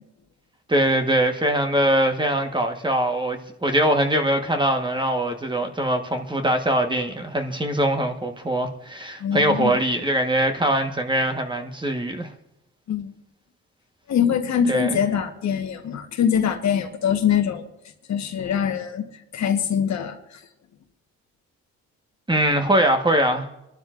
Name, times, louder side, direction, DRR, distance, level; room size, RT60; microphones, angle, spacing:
voice 1, 0.7-12.3 14.7-15.0 22.3-23.5, right 1 dB, 15° right, 4 dB, 1.4 m, -22 dB
voice 2, 9.2-9.7 12.9-13.1 14.1-17.6 18.1-19.0 19.3-20.2, left 8 dB, 65° left, 5 dB, 1.4 m, -23 dB
27.0 x 12.0 x 2.6 m, 0.88 s
cardioid pair, 90°, 30 cm